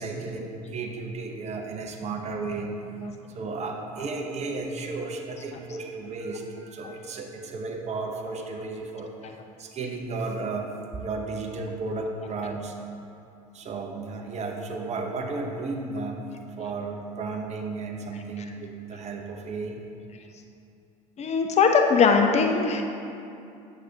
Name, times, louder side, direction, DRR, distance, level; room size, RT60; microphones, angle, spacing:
voice 1, 0.0-12.7 13.5-16.2 16.6-19.8, right 3 dB, 35° right, 2 dB, 0.9 m, -34 dB
voice 2, 21.2-22.8, left 5 dB, 35° left, 3 dB, 0.7 m, -20 dB
7.9 x 7.6 x 2.8 m, 2.6 s
hypercardioid pair, 70°, 20 cm